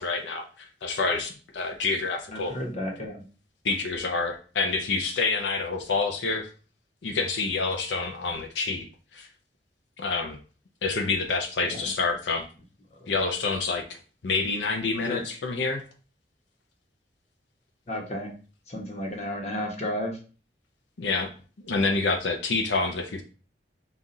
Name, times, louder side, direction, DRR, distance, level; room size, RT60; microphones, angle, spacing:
voice 1, 0.0-2.5 3.6-6.5 7.0-8.9 9.1-9.3 10.0-10.4 10.8-12.4 13.1-13.8 14.2-15.8 21.0-21.3 21.6-23.2, left 4 dB, 85° left, 4 dB, 0.6 m, -27 dB
voice 2, 2.3-3.2 11.6-11.8 13.0-13.1 15.0-15.2 17.9-18.3 18.7-20.2, left 1 dB, 40° left, 1 dB, 1.0 m, -32 dB
5.6 x 2.5 x 3.8 m, 0.38 s
head